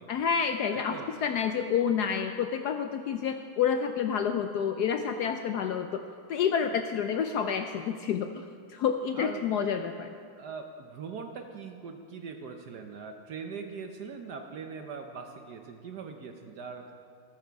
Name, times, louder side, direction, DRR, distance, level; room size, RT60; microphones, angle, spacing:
voice 1, 0.1-1.0 1.2-10.1, left 7 dB, 85° left, 7 dB, 0.8 m, -29 dB
voice 2, 0.7-1.1 9.1-9.5 10.4-16.9, right 5 dB, 60° right, 5 dB, 1.1 m, -41 dB
14.0 x 13.5 x 4.6 m, 2.1 s
omnidirectional pair, 2.3 m